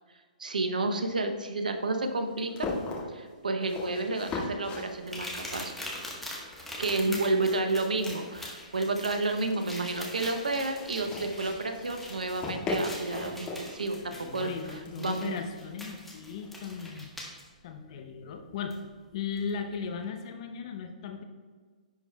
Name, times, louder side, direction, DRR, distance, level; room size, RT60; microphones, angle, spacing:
voice 1, 0.4-2.7 3.1-5.8 6.8-14.5 15.0-15.3, right 2 dB, 80° right, 6 dB, 0.7 m, -30 dB
sound 1, 1.0-17.4, left 3 dB, 25° left, 1.8 m, -41 dB
sound 2, 5.1-17.4 18.7-18.8 19.4-19.5, left 1 dB, 5° left, 1.2 m, -43 dB
voice 2, 14.1-17.1 17.6-18.8 19.1-21.2, left 6 dB, 50° left, 6 dB, 0.7 m, -37 dB
10.0 x 4.5 x 2.2 m, 1.5 s
hypercardioid pair, 125°, 4 cm